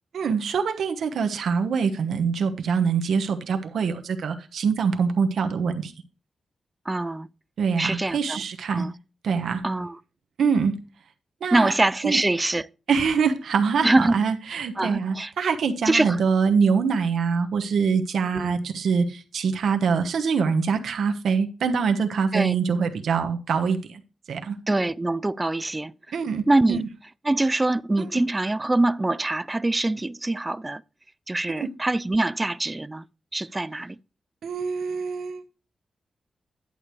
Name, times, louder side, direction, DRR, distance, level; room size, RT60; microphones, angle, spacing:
voice 1, 0.1-5.9 7.6-8.9 9.2-9.6 10.4-10.8 11.4-11.7 12.0-12.2 12.9-24.0 24.3-24.6 26.1-26.9 28.0-28.1 31.6-31.7 34.4-35.4, right 5 dB, 85° right, 1.1 m, -24 dB
voice 2, 6.9-7.3 7.8-8.4 8.7-8.9 9.6-10.0 11.5-12.7 13.8-14.2 14.8-15.3 15.9-16.2 18.3-18.6 22.3-22.6 24.7-25.9 26.5-26.8 27.3-30.8 31.3-33.0 33.3-34.0, right 2 dB, 20° right, 0.3 m, -24 dB
11.0 x 8.3 x 3.2 m
wide cardioid pair, 95°, 0 cm